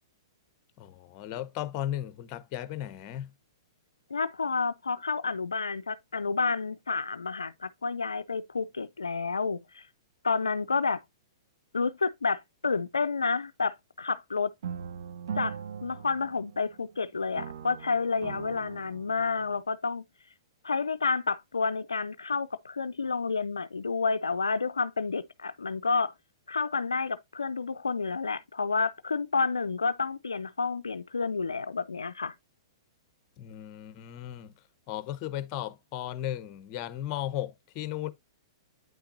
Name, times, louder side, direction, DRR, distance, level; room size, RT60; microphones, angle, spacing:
voice 1, 0.8-3.3 33.4-34.5 34.9-38.1, left 12 dB, 40° left, 0.7 m, -35 dB
voice 2, 4.1-9.9 10.2-11.0 11.7-14.5 15.4-20.0 20.6-26.1 26.5-32.3, left 4 dB, 90° left, 0.4 m, -30 dB
sound 1, 14.6-17.0 17.4-19.6, right 7 dB, 70° right, 0.7 m, -40 dB
9.1 x 5.7 x 2.6 m
hypercardioid pair, 115°, 2 cm